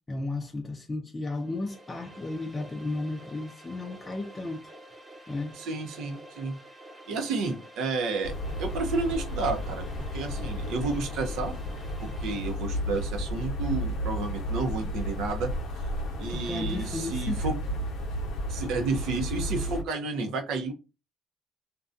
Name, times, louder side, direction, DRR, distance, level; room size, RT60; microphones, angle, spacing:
voice 1, 0.1-4.6 5.3-5.6 16.3-17.5, left 2 dB, 20° left, 0.4 m, -34 dB
sound 1, 1.3-13.0, right 1 dB, 25° right, 0.9 m, -49 dB
voice 2, 5.6-6.6 7.1-8.3 8.6-9.8 10.1-11.5 12.0-15.5 16.2-17.6 18.5-20.7, right 3 dB, 85° right, 0.6 m, -31 dB
sound 2, 8.2-19.8, equal, 75° left, 0.7 m, -33 dB
2.6 x 2.2 x 2.5 m
cardioid pair, 100°, 0 cm